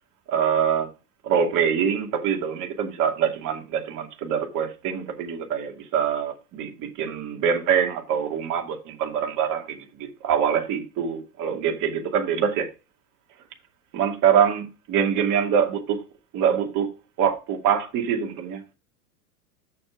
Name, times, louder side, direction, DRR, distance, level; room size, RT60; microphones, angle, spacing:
voice 1, 0.3-0.9 1.2-12.7 13.9-16.0 16.3-16.9 17.2-18.7, right 7 dB, 40° right, 2.5 m, -24 dB
7.1 x 6.8 x 4.8 m
hypercardioid pair, 100°, 46 cm